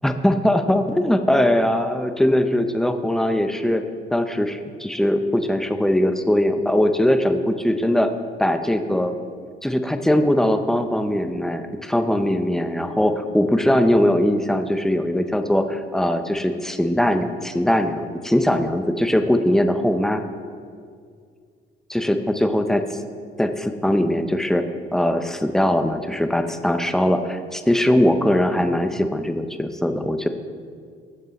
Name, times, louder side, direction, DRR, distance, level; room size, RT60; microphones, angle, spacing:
voice 1, 0.0-3.8 4.1-8.1 8.4-9.2 9.6-20.2 21.9-22.9 23.4-24.6 24.9-30.3, left 1 dB, ahead, 7 dB, 0.6 m, -20 dB
15.0 x 5.3 x 4.1 m, 2.2 s
cardioid pair, 90°, 20 cm